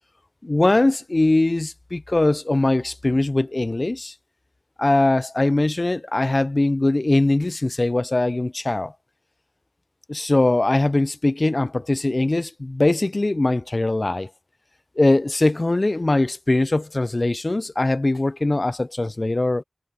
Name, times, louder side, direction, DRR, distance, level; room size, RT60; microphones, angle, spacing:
voice 1, 0.4-4.1 4.8-8.9 10.1-14.3 15.0-19.6, left 2 dB, 50° left, 0.3 m, -21 dB
wide cardioid pair, 45°, 0 cm